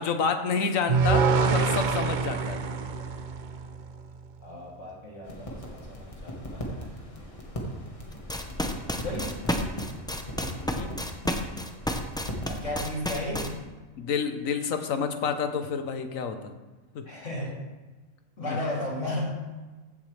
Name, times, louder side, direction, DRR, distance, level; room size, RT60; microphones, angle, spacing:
voice 1, 0.0-2.6 10.6-10.9 14.0-16.6 16.9-17.1, left 6 dB, 80° left, 7 dB, 1.3 m, -29 dB
sound 1, 0.9-4.1, right 5 dB, 55° right, 0.5 m, -25 dB
voice 2, 4.4-6.9 8.8-9.3 9.8-9.9 12.4-13.6 17.0-17.6 18.4-19.4, left 1 dB, 65° left, -5 dB, 3.2 m, -34 dB
sound 2, 5.2-12.7, equal, 25° left, 1.6 m, -39 dB
sound 3, 8.1-13.5, equal, 5° left, 0.4 m, -30 dB
15.5 x 7.3 x 3.3 m, 1.2 s
omnidirectional pair, 1.4 m